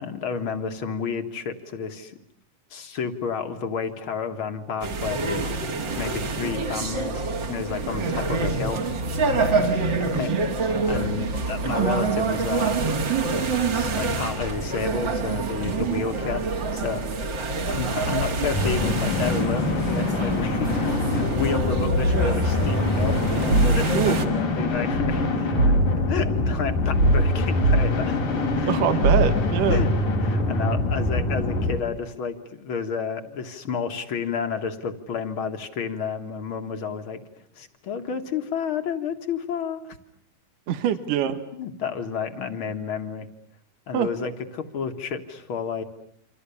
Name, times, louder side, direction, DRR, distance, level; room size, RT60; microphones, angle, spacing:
voice 1, 0.0-2.2 2.7-7.2 7.5-8.8 9.3-12.9 13.4-17.3 17.7-25.6 26.1-28.2 28.5-29.0 29.7-29.9 30.2-37.2 37.6-40.0 40.7-40.8 41.5-43.3 43.9-45.8, left 6 dB, 45° left, 6 dB, 2.2 m, -31 dB
sound 1, 4.8-24.3, right 3 dB, 40° right, 2.2 m, -26 dB
sound 2, 18.5-31.8, left 2 dB, 90° left, 5.3 m, -25 dB
sound 3, 23.0-24.0 24.9-26.1 27.0-28.1 29.0-30.2 31.1-31.2, right 2 dB, 55° right, 3.0 m, -22 dB
voice 2, 28.7-29.8 40.7-41.4 43.9-44.1, right 10 dB, 80° right, 9 dB, 3.0 m, -24 dB
29.0 x 26.0 x 7.1 m, 0.66 s
omnidirectional pair, 3.7 m